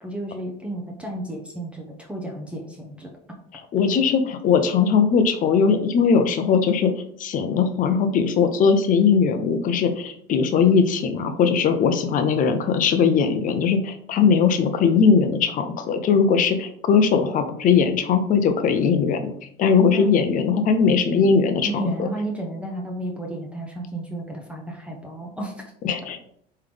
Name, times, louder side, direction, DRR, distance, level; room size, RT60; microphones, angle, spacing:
voice 1, 0.0-3.1 19.9-20.1 21.6-25.7, right 1 dB, 5° right, 0 dB, 0.7 m, -32 dB
voice 2, 3.7-6.9 7.2-19.3 19.6-21.7 25.8-26.2, left 6 dB, 40° left, 8 dB, 0.6 m, -19 dB
3.7 x 3.2 x 3.3 m, 0.66 s
supercardioid pair, 110°, 21 cm